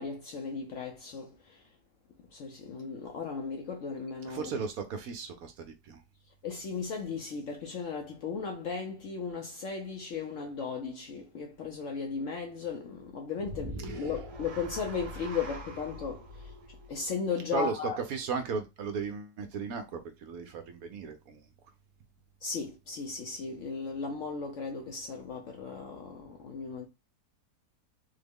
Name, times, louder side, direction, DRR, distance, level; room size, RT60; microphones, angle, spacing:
voice 1, 0.0-1.6 2.3-4.5 6.4-16.5 16.9-18.0 22.4-26.9, left 5 dB, 65° left, 0.8 m, -36 dB
voice 2, 4.3-5.5 5.8-6.0 13.8-14.2 15.3-15.8 17.5-21.4, right 5 dB, 70° right, 0.9 m, -36 dB
sound 1, 13.4-17.7, right 1 dB, 40° right, 0.5 m, -43 dB
3.7 x 2.1 x 3.4 m
omnidirectional pair, 1.8 m